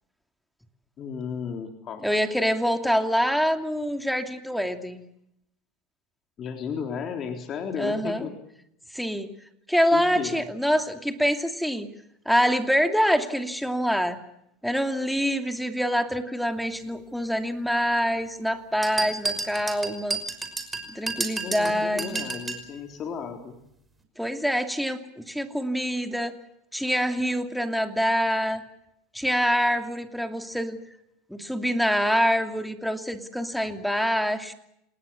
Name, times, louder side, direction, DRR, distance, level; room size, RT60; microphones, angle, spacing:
voice 1, 1.0-2.2 6.4-8.4 9.9-10.4 21.4-23.6, left 6 dB, 40° left, 4 dB, 3.7 m, -34 dB
voice 2, 2.0-5.0 7.8-8.3 8.9-9.3 9.7-11.9 12.3-14.2 14.6-20.2 20.9-22.2 24.2-26.3 26.7-28.6 29.1-30.8 31.3-34.5, equal, ahead, 6 dB, 2.8 m, -25 dB
sound 1, 18.8-22.7, right 3 dB, 15° right, 5.6 m, -31 dB
28.0 x 19.5 x 7.1 m, 0.78 s
supercardioid pair, 110°, 0 cm